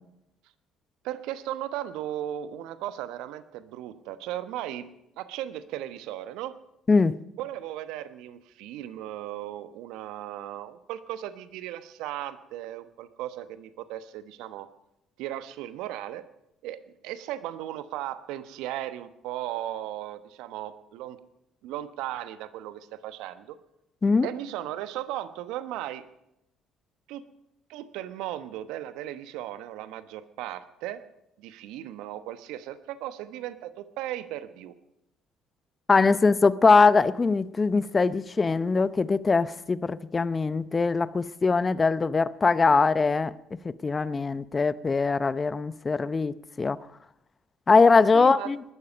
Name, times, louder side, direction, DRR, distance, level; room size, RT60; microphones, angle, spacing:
voice 1, 1.0-4.8 5.2-6.6 7.4-14.7 15.2-16.2 16.6-21.2 21.6-23.6 24.2-26.0 27.1-27.2 27.7-31.0 31.4-34.7 48.1-48.5, right 13 dB, 70° right, 1.0 m, -36 dB
voice 2, 6.9-7.2 24.0-24.3 35.9-43.3 43.6-46.8 47.7-48.6, left 4 dB, 30° left, 0.7 m, -22 dB
20.0 x 12.0 x 5.3 m
hypercardioid pair, 55°, 0 cm